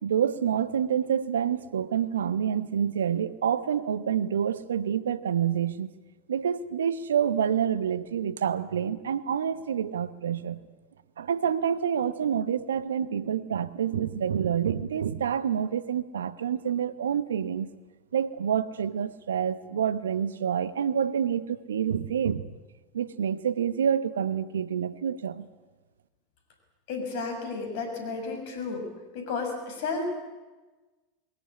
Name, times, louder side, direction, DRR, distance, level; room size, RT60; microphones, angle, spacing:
voice 1, 0.0-5.9 6.3-10.6 11.2-17.7 18.1-22.5 22.9-25.5, right 8 dB, 80° right, 15 dB, 1.0 m, -27 dB
voice 2, 26.9-28.9 29.1-30.2, left 4 dB, 60° left, 4 dB, 6.6 m, -32 dB
21.5 x 17.0 x 9.8 m, 1.2 s
hypercardioid pair, 85°, 0 cm